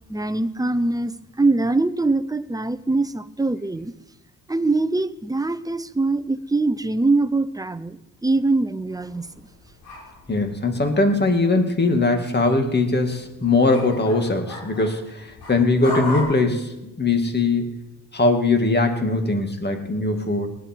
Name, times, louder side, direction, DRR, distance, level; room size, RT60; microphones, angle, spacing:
voice 1, 0.1-3.9 4.5-9.3, right 2 dB, 10° right, 13 dB, 0.7 m, -23 dB
sound 1, 8.9-11.6 11.9-16.2, left 1 dB, 85° left, 6.4 m, -37 dB
voice 2, 10.3-16.7 17.0-17.7 18.1-20.5, left 3 dB, 30° left, 5 dB, 2.3 m, -21 dB
19.0 x 10.5 x 4.6 m, 0.98 s
cardioid pair, 80°, 37 cm